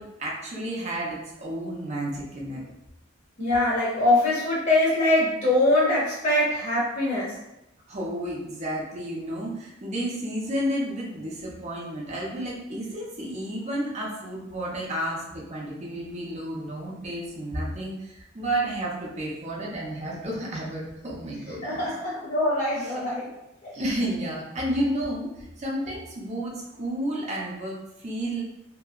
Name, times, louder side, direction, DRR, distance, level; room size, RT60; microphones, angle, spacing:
voice 1, 0.0-2.6 7.9-21.9 22.8-22.9 23.7-28.4, right 1 dB, 35° right, -4 dB, 0.7 m, -31 dB
voice 2, 3.4-7.3 21.6-23.3 23.6-23.7, left 1 dB, 40° left, -7 dB, 0.8 m, -23 dB
2.9 x 2.7 x 2.4 m, 0.89 s
head